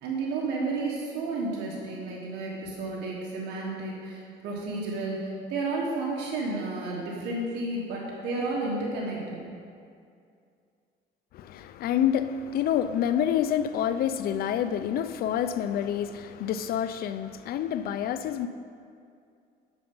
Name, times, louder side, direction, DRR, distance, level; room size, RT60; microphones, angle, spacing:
voice 1, 0.0-9.4, right 3 dB, 80° right, 1.4 m, -32 dB
voice 2, 11.3-18.5, left 9 dB, 65° left, 0.4 m, -28 dB
9.0 x 6.7 x 5.4 m
cardioid pair, 110°, 17 cm